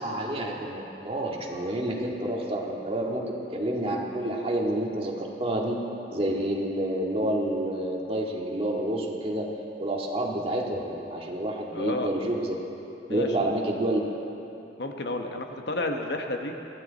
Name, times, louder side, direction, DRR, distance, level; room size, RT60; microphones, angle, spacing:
voice 1, 0.0-5.8 6.1-9.5 9.8-12.6 13.1-14.0, right 1 dB, 35° right, -1 dB, 2.0 m, -29 dB
voice 2, 11.7-12.1 13.1-13.3 14.8-16.6, left 2 dB, 70° left, 4 dB, 1.1 m, -31 dB
22.5 x 16.0 x 4.1 m, 2.9 s
head